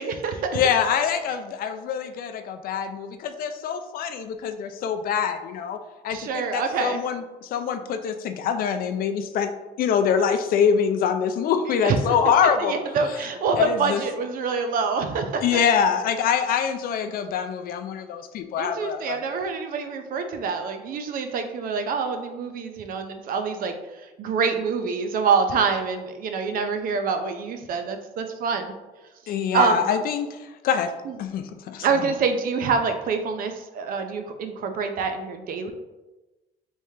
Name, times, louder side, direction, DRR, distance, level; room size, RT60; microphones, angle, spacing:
voice 1, 0.0-0.6 6.1-7.0 11.8-12.0 12.6-15.6 18.6-28.7 29.5-29.9 31.0-31.2 31.8-35.7, right 5 dB, 55° right, 6 dB, 0.5 m, -26 dB
voice 2, 0.5-5.8 6.0-9.5 9.8-12.7 13.6-14.0 15.4-19.2 29.3-30.9 31.2-31.9, left 7 dB, 60° left, 8 dB, 0.4 m, -24 dB
3.4 x 3.1 x 2.7 m, 1.1 s
cardioid pair, 110°, 17 cm